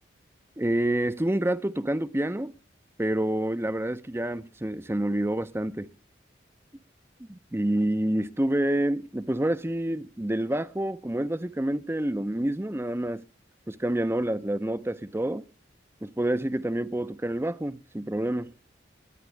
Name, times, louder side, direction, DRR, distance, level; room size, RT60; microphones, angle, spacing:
voice 1, 0.6-2.5 3.0-5.9 7.3-13.2 13.7-15.5 16.0-18.5, right 1 dB, 15° right, 0.5 m, -28 dB
20.5 x 10.5 x 3.4 m
head